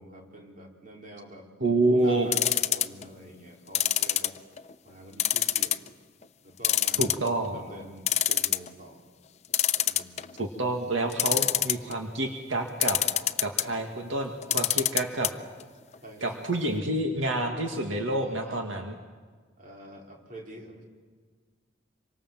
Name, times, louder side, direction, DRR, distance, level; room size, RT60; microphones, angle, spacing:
voice 1, 0.0-1.5 1.9-4.4 4.8-5.9 6.4-7.2 7.5-9.0 9.8-10.3 11.3-11.5 16.0-16.4 18.2-18.7 19.6-20.8, right 1 dB, 45° right, 0 dB, 4.4 m, -46 dB
voice 2, 1.6-2.3 7.0-7.6 10.4-13.0 13.4-15.3 16.2-19.0, right 2 dB, 85° right, 4 dB, 2.1 m, -28 dB
sound 1, 2.3-3.0 3.7-4.7 5.2-5.9 6.2-6.3 6.6-7.5 7.8-7.9 8.1-8.7 9.5-10.4 11.1-11.9 12.8-13.7 14.4-15.3 15.6-15.7 15.9-16.0, left 12 dB, 35° left, 0.7 m, -24 dB
26.5 x 24.5 x 7.6 m, 1.5 s
head